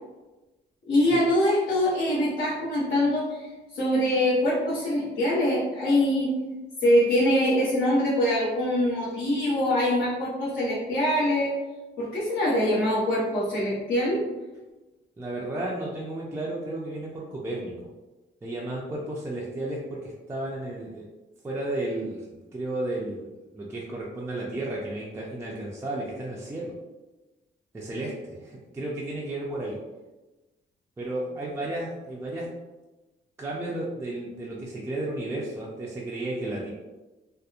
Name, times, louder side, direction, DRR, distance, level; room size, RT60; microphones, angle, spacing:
voice 1, 0.9-3.5 3.7-6.4 6.8-11.5 12.0-14.2, left 1 dB, 70° left, -11 dB, 0.9 m, -24 dB
voice 2, 15.2-17.9 18.4-21.1 21.4-23.3 23.5-26.7 27.7-29.8 31.0-32.5 33.4-36.7, right 1 dB, 15° right, -5 dB, 0.3 m, -33 dB
2.7 x 2.0 x 2.4 m, 1.1 s
cardioid pair, 130°, 20 cm